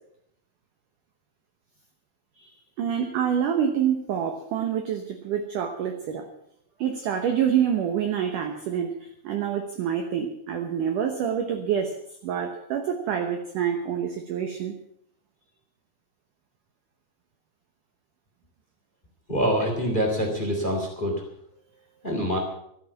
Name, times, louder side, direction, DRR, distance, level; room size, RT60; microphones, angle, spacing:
voice 1, 2.4-6.3 6.8-11.9 12.2-14.7, right 8 dB, 70° right, 5 dB, 2.0 m, -27 dB
voice 2, 19.3-21.3 22.0-22.4, equal, 15° left, 1 dB, 2.7 m, -25 dB
13.5 x 11.0 x 7.2 m, 0.72 s
omnidirectional pair, 5.1 m